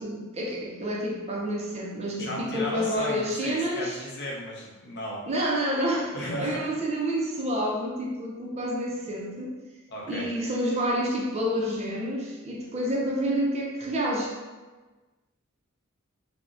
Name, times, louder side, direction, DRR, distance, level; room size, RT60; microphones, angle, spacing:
voice 1, 0.0-4.0 5.3-9.5 10.1-14.3, equal, 30° right, -2 dB, 0.4 m, -29 dB
voice 2, 2.2-5.2 6.1-6.7 9.9-10.3, equal, 55° left, -2 dB, 0.6 m, -34 dB
3.6 x 2.0 x 2.4 m, 1.3 s
head